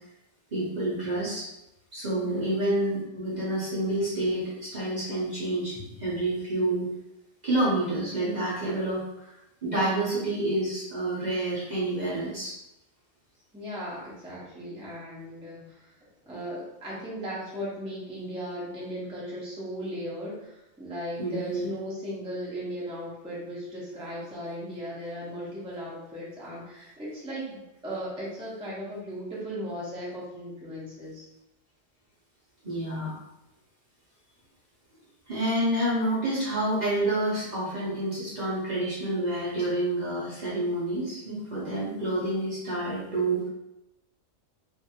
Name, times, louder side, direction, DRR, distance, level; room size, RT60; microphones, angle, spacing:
voice 1, 0.5-1.5 1.9-6.9 7.4-12.5 21.2-21.7 32.6-33.2 35.3-43.5, right 1 dB, 40° right, -8 dB, 0.8 m, -28 dB
voice 2, 2.2-2.6 13.5-15.9 16.3-31.2, equal, 5° right, -7 dB, 0.6 m, -37 dB
2.6 x 2.5 x 2.7 m, 0.88 s
omnidirectional pair, 1.4 m